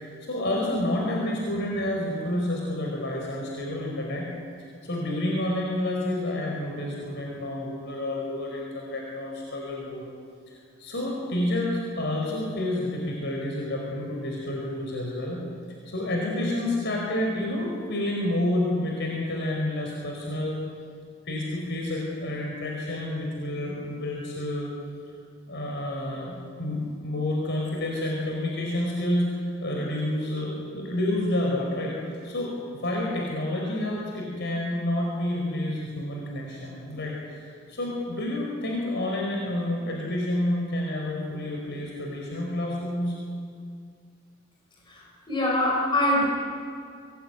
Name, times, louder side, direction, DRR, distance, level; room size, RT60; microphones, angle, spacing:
voice 1, 0.0-4.3 4.6-10.0 10.5-10.6 10.8-15.4 15.8-20.6 21.3-24.7 25.5-32.5 32.8-43.1, left 1 dB, 60° left, -2 dB, 4.9 m, -29 dB
voice 2, 44.9-46.3, left 1 dB, 25° left, -3 dB, 6.2 m, -24 dB
25.0 x 20.5 x 9.6 m, 2.3 s
head